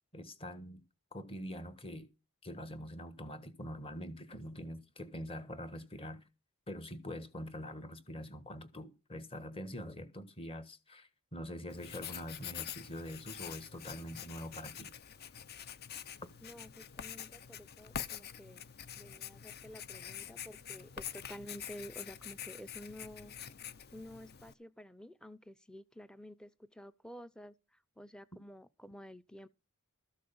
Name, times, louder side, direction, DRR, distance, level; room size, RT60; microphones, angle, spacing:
voice 1, 0.1-0.8 1.1-2.1 2.4-6.2 6.7-14.9, equal, 25° left, 1.5 m, -44 dB
Writing, 11.7-24.5, left 9 dB, 45° left, 0.7 m, -46 dB
voice 2, 16.4-18.7 18.9-23.3 23.9-29.5, equal, 5° left, 0.6 m, -51 dB
13.5 x 6.6 x 7.1 m
head